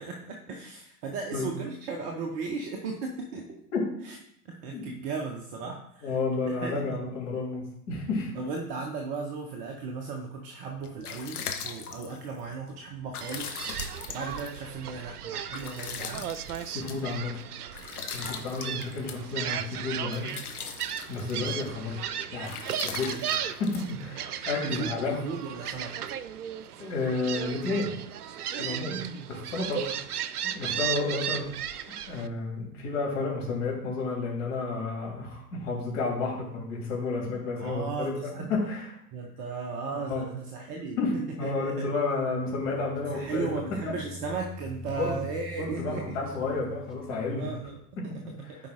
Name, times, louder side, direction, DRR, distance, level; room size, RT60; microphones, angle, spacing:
voice 1, 0.0-3.6 4.0-4.2 4.4-6.1 6.5-7.0 8.3-16.3 21.2-21.5 24.6-26.0 28.8-29.3 29.9-30.0 37.6-38.5 39.1-41.0 41.4-41.9 43.1-46.2 47.4-47.8 48.6-48.7, right 4 dB, 20° right, 2 dB, 0.4 m, -36 dB
voice 2, 6.0-8.3 16.6-17.3 18.1-20.3 21.1-22.0 22.3-22.5 22.8-25.3 26.8-27.9 28.6-29.0 29.5-30.0 30.4-31.4 31.9-38.1 38.5-39.0 39.9-40.2 41.0-41.1 41.4-43.5 43.8-43.9 44.9-45.2 45.6-47.5 48.0-48.6, left 3 dB, 50° left, -2 dB, 3.2 m, -31 dB
sound 1, 10.6-24.6, left 7 dB, 70° left, 1.0 m, -41 dB
Gull seagull, 13.2-32.3, right 9 dB, 70° right, 0.6 m, -36 dB
sound 2, 42.3-47.9, equal, ahead, 1.0 m, -45 dB
13.5 x 4.7 x 2.5 m, 0.73 s
figure-of-eight pair, 95°, 47 cm